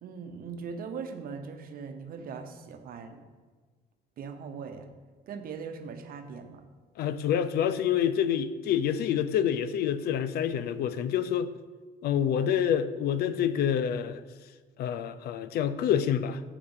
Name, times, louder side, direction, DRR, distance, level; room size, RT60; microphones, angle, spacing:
voice 1, 0.0-3.2 4.2-4.9 5.3-6.6, right 5 dB, 60° right, 7 dB, 1.0 m, -40 dB
voice 2, 7.0-11.5 12.0-14.2 14.8-16.4, left 9 dB, 70° left, 13 dB, 0.6 m, -27 dB
7.6 x 5.0 x 7.2 m, 1.4 s
cardioid pair, 110°, 17 cm